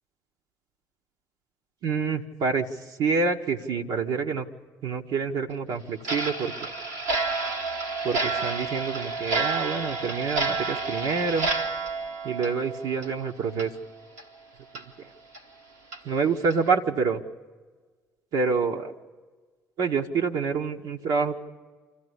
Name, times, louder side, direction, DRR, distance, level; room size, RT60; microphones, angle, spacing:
voice 1, 1.8-2.7 3.0-4.5 4.8-6.7 8.0-11.5 12.2-13.7 16.0-17.2 18.3-18.9 19.8-21.4, right 5 dB, 65° right, 1 dB, 0.9 m, -27 dB
Clock, 6.0-13.2 13.5-13.7 14.2-14.3 14.7-14.8 15.3-15.4 15.9-16.0 16.5-16.7, right 3 dB, 90° right, 1.3 m, -30 dB
25.5 x 14.5 x 8.2 m, 1.4 s
hypercardioid pair, 50°, 8 cm